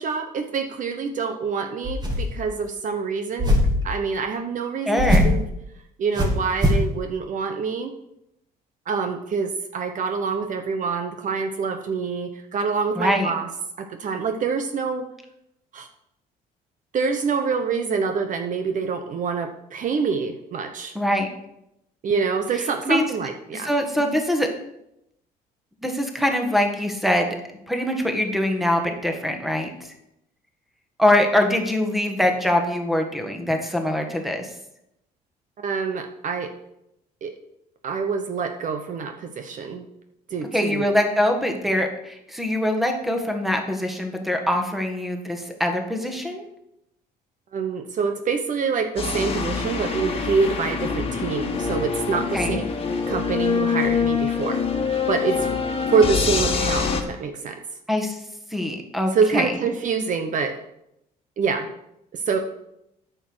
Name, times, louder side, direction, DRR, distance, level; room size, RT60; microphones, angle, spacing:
voice 1, 0.0-5.4 6.0-7.9 8.9-13.5 13.8-15.1 15.7-15.9 16.9-20.9 22.0-23.7 35.6-36.5 37.2-37.3 37.8-39.9 40.3-40.8 47.5-52.7 53.1-54.6 55.1-55.6 55.9-57.6 59.1-60.6 61.4-61.7 62.1-62.4, right 5 dB, 50° right, 6 dB, 0.9 m, -26 dB
sound 1, 1.8-2.4 3.4-3.9 5.0-5.4 6.2-6.9, left 1 dB, 25° right, 2.5 m, -20 dB
voice 2, 4.8-5.3 12.9-13.3 20.9-21.3 22.8-23.0 23.5-24.5 25.8-27.4 27.7-29.9 31.0-34.5 40.5-46.5 52.3-52.6 57.9-58.2 58.5-59.5, left 1 dB, ahead, 4 dB, 1.6 m, -23 dB
sound 2, 49.0-57.0, left 5 dB, 35° left, 1.6 m, -25 dB
9.0 x 6.7 x 6.2 m, 0.82 s
cardioid pair, 110°, 17 cm